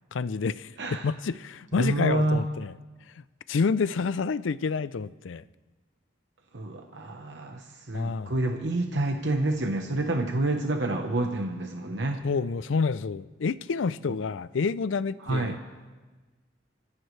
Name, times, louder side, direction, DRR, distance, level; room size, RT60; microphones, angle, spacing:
voice 1, 0.1-2.7 3.5-5.4 7.9-8.3 12.2-15.6, left 5 dB, 80° left, 16 dB, 0.5 m, -28 dB
voice 2, 0.8-1.1 1.8-2.4 6.5-12.3 15.2-15.6, right 2 dB, 65° right, 4 dB, 1.0 m, -28 dB
26.0 x 15.0 x 3.3 m, 1.3 s
head